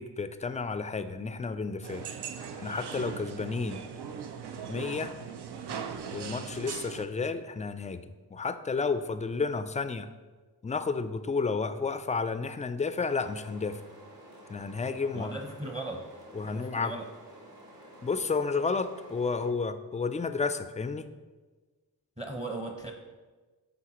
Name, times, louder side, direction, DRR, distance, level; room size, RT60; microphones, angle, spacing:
voice 1, 0.0-2.2 2.6-3.8 4.7-5.1 6.1-8.0 8.3-10.1 10.6-13.8 14.5-15.3 16.3-16.9 18.0-21.1, left 4 dB, 20° left, 11 dB, 0.3 m, -31 dB
sound 1, 1.8-7.1, right 7 dB, 80° right, 0.6 m, -39 dB
sound 2, 13.0-19.5, right 1 dB, 45° right, 1.4 m, -51 dB
voice 2, 15.1-16.1 16.4-17.1 22.2-22.9, right 2 dB, 15° right, 2 dB, 0.7 m, -37 dB
9.1 x 3.8 x 3.0 m, 1.3 s
cardioid pair, 55°, 39 cm